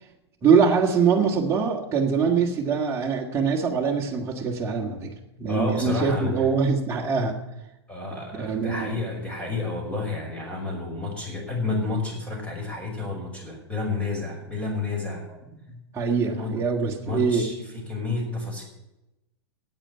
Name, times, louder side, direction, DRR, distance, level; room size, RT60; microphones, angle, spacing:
voice 1, 0.4-7.4 8.3-9.0 15.7-17.5, right 5 dB, 20° right, -2 dB, 1.9 m, -23 dB
voice 2, 5.5-6.5 7.9-15.3 16.3-16.5 17.0-18.6, left 3 dB, 10° left, 0 dB, 5.5 m, -30 dB
9.2 x 8.7 x 9.7 m, 0.93 s
hypercardioid pair, 120°, 14 cm